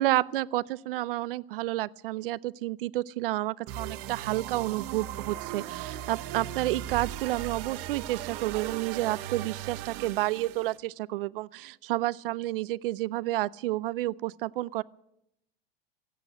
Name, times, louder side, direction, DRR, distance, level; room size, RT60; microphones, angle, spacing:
voice 1, 0.0-14.8, right 17 dB, 65° right, 22 dB, 0.6 m, -30 dB
sound 1, 3.7-10.8, right 12 dB, 50° right, 1.1 m, -38 dB
16.0 x 8.5 x 9.5 m, 0.79 s
hypercardioid pair, 95°, 30 cm